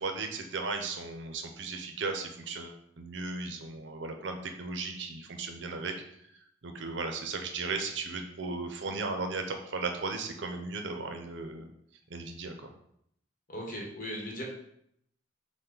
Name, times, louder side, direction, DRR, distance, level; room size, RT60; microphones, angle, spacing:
voice 1, 0.0-5.9 6.6-11.7 12.1-12.7, right 3 dB, 65° right, 5 dB, 0.6 m, -36 dB
voice 2, 13.5-14.4, equal, 45° left, -1 dB, 1.1 m, -38 dB
5.6 x 2.2 x 3.8 m, 0.73 s
head